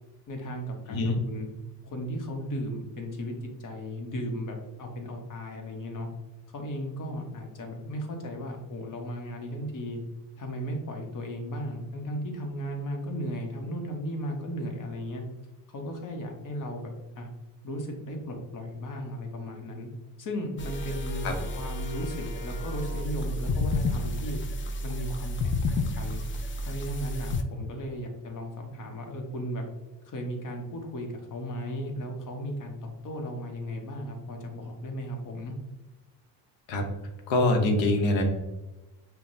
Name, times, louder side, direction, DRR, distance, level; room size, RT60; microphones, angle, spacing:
voice 1, 0.3-1.5 1.8-6.1 6.5-10.0 10.4-15.2 15.7-17.3 17.6-19.9 20.2-24.4 24.8-26.2 26.6-29.7 30.0-35.6, equal, 45° left, 3 dB, 1.0 m, -36 dB
sound 1, 20.6-27.4, left 1 dB, 30° left, 0.4 m, -31 dB
voice 2, 37.3-38.2, left 2 dB, 75° left, 3 dB, 0.9 m, -24 dB
5.6 x 2.3 x 2.6 m, 1.1 s
supercardioid pair, 75°, 45 cm